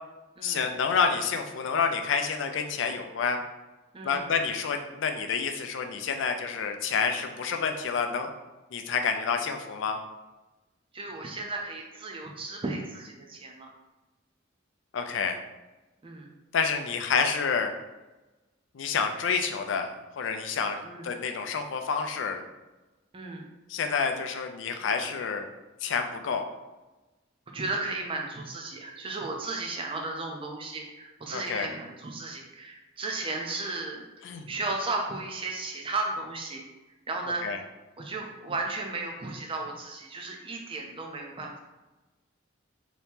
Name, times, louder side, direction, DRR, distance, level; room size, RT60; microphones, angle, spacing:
voice 1, 0.4-3.4 4.0-8.3 8.7-10.0 14.9-15.4 16.5-17.7 18.7-19.9 20.2-22.4 23.7-25.5 25.8-26.4 31.3-31.7 34.2-34.5 37.4-37.6, left 5 dB, 70° left, 5 dB, 0.4 m, -28 dB
voice 2, 10.9-13.7 16.0-16.3 20.8-21.1 23.1-23.5 27.5-34.0 34.5-36.6 37.1-37.4 38.0-41.6, right 3 dB, 25° right, 1 dB, 0.5 m, -34 dB
2.9 x 2.7 x 3.5 m, 1.1 s
head